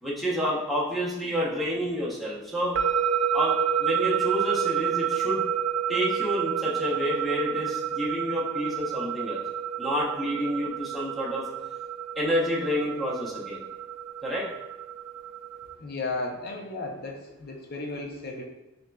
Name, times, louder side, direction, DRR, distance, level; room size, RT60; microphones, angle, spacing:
voice 1, 0.0-2.8 3.3-5.5 5.9-9.4 9.8-11.4 12.2-13.6 14.2-14.5, equal, ahead, -6 dB, 0.8 m, -29 dB
sound 1, 2.8-15.7, right 8 dB, 65° right, 0.3 m, -29 dB
voice 2, 15.8-18.4, left 2 dB, 50° left, 1 dB, 0.6 m, -34 dB
6.0 x 2.6 x 2.3 m, 0.96 s
head